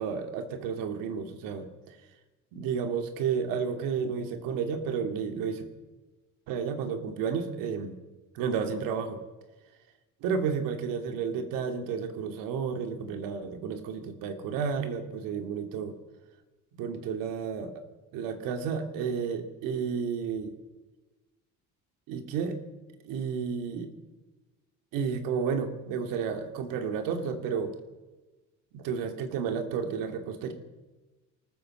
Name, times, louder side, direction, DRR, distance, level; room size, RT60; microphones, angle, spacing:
voice 1, 0.0-2.0 2.5-5.6 6.5-7.9 8.3-9.2 10.2-16.0 16.7-17.8 18.1-20.5 22.1-22.6 23.0-23.9 24.9-27.7 28.7-30.5, right 6 dB, 85° right, 7 dB, 2.7 m, -32 dB
23.5 x 14.0 x 7.8 m, 1.2 s
cardioid pair, 110°, 32 cm